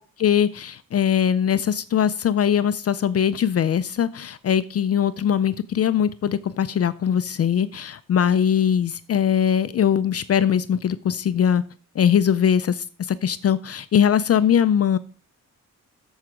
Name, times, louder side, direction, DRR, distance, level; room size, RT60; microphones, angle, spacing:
voice 1, 0.2-11.6 12.0-15.0, left 8 dB, 50° left, 14 dB, 0.5 m, -21 dB
7.5 x 7.4 x 5.0 m, 0.39 s
wide cardioid pair, 125°, 31 cm